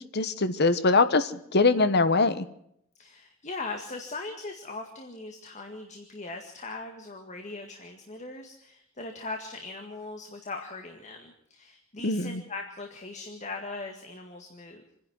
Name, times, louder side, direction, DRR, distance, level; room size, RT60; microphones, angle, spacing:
voice 1, 0.0-2.5 12.0-12.4, left 3 dB, 55° left, 12 dB, 1.1 m, -23 dB
voice 2, 3.0-14.8, left 3 dB, 35° left, 4 dB, 1.9 m, -40 dB
27.0 x 10.5 x 9.5 m, 0.72 s
head